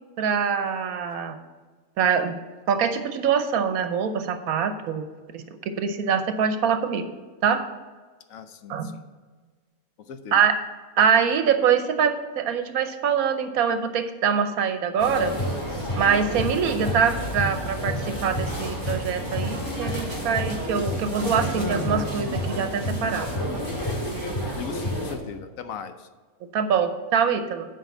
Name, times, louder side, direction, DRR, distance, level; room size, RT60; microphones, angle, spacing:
voice 1, 0.2-1.4 2.0-2.3 2.7-5.1 5.3-5.4 5.8-7.0 7.4-7.6 8.7-8.9 10.3-10.6 11.0-15.3 16.0-23.3 26.5-27.7, right 7 dB, 75° right, 8 dB, 1.2 m, -24 dB
voice 2, 8.3-9.0 10.0-10.4 24.5-26.1, left 6 dB, 70° left, 9 dB, 1.0 m, -38 dB
sound 1, 15.0-25.1, equal, 20° left, 2.3 m, -29 dB
7.4 x 5.2 x 7.1 m, 1.4 s
omnidirectional pair, 1.5 m